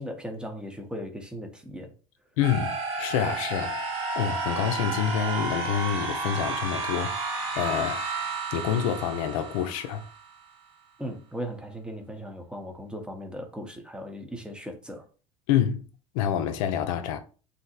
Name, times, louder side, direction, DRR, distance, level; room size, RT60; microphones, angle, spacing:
voice 1, 0.0-1.9 11.0-15.0, equal, 5° right, 0.7 m, -37 dB
voice 2, 2.4-3.8 4.2-8.0 8.5-10.0 15.5-15.8 16.1-17.2, left 9 dB, 85° left, 0.5 m, -27 dB
sound 1, 2.4-10.3, right 3 dB, 80° right, 1.1 m, -32 dB
2.7 x 2.0 x 3.9 m
supercardioid pair, 95°, 17 cm